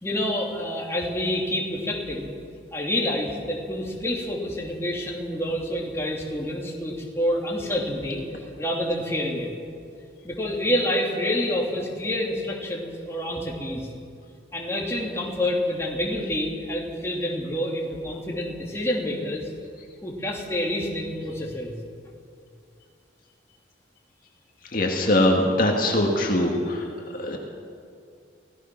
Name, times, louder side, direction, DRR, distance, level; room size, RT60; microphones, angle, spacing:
voice 1, 0.0-2.3 2.7-8.2 8.6-9.5 10.2-13.9 14.5-19.5 20.0-21.8, left 1 dB, 15° left, -2 dB, 2.8 m, -28 dB
voice 2, 24.7-26.9 27.2-27.4, left 1 dB, 45° left, 0 dB, 2.3 m, -22 dB
25.5 x 17.5 x 6.1 m, 2.4 s
head